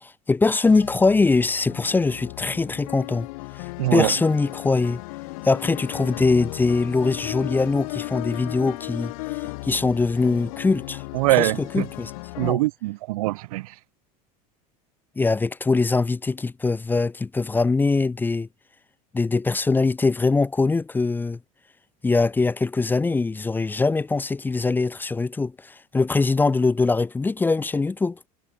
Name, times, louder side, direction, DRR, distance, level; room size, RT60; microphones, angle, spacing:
voice 1, 0.0-3.3 3.9-5.0 5.4-9.1 9.6-11.0 11.4-12.1 12.4-12.6 15.2-18.5 19.1-21.4 22.0-28.2, left 3 dB, 10° left, 0.6 m, -22 dB
sound 1, 0.6-12.5, left 24 dB, 75° left, 0.5 m, -35 dB
voice 2, 3.8-4.1 11.1-11.9 12.4-13.8, right 20 dB, 85° right, 0.8 m, -23 dB
supercardioid pair, 130°, 18 cm